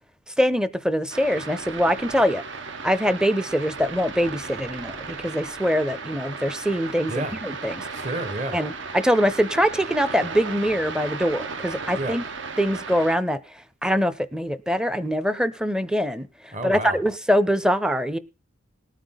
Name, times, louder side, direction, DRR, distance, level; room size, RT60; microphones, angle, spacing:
voice 1, 0.4-2.4 2.8-7.8 8.5-12.2 12.6-13.4 13.8-16.3 16.6-18.2, equal, 5° right, 16 dB, 0.5 m, -23 dB
sound 1, 1.1-13.2, right 4 dB, 65° right, 1.2 m, -35 dB
voice 2, 7.9-8.6 11.9-12.2 16.5-17.0, right 2 dB, 40° right, 12 dB, 1.5 m, -30 dB
19.0 x 9.0 x 3.9 m, 0.31 s
head